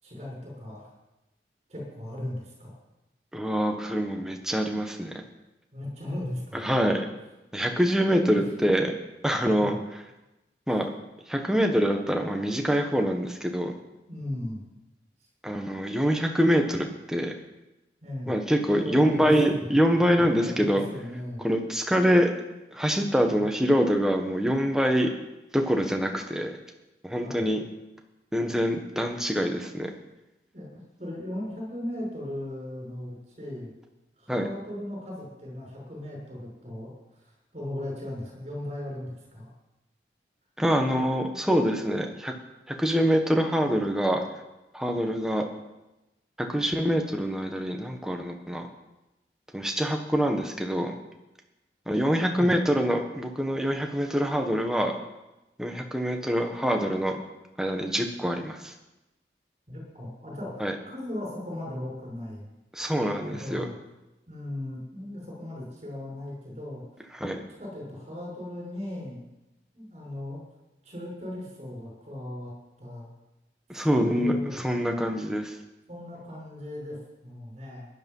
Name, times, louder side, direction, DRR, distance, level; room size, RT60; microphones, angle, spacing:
voice 1, 0.0-0.8 1.7-2.8 5.7-6.9 8.0-8.5 9.6-9.8 14.1-14.6 18.0-18.3 18.7-21.4 23.3-23.4 27.2-27.5 30.5-30.7 31.0-33.7 34.2-36.9 37.2-39.5 52.3-52.5 59.7-62.5 63.2-63.7 64.3-66.8 67.2-69.2 69.7-70.4 70.8-72.5 72.8-73.1 73.9-74.6 75.9-77.0 77.2-77.9, left 1 dB, 40° right, -2 dB, 6.2 m, -37 dB
voice 2, 3.3-5.2 6.5-7.0 7.5-8.9 9.2-10.0 10.7-10.9 11.3-13.7 15.4-17.3 18.3-20.8 21.4-22.3 22.7-25.1 25.5-26.5 27.0-27.6 28.3-29.9 34.3-34.5 40.6-42.3 42.7-44.2 44.7-45.4 46.4-48.7 49.5-50.9 51.9-54.9 55.6-57.2 57.6-58.7 60.6-60.7 62.7-63.7 67.1-67.4 73.7-74.3 74.6-75.6, equal, 5° right, 3 dB, 1.4 m, -25 dB
16.5 x 11.0 x 5.6 m, 0.98 s
head